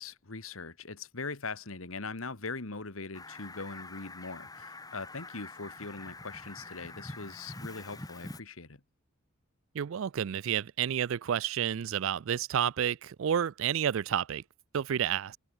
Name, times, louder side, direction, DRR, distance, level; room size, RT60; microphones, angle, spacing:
voice 1, 0.0-8.8, left 3 dB, 75° left, 1.9 m, -41 dB
Fowl, 3.1-8.4, left 2 dB, 15° left, 1.6 m, -45 dB
voice 2, 9.7-14.4 14.7-15.4, right 9 dB, 70° right, 0.4 m, -30 dB
head